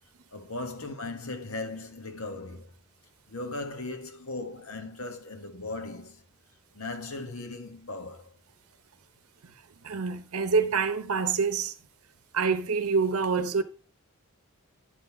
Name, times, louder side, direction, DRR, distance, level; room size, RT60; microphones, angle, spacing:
voice 1, 0.3-2.7 3.3-6.2 6.7-8.4, left 2 dB, 75° left, 1.6 m, -38 dB
voice 2, 9.8-11.7 12.3-13.6, right 5 dB, 80° right, 0.7 m, -26 dB
10.5 x 3.9 x 5.9 m
head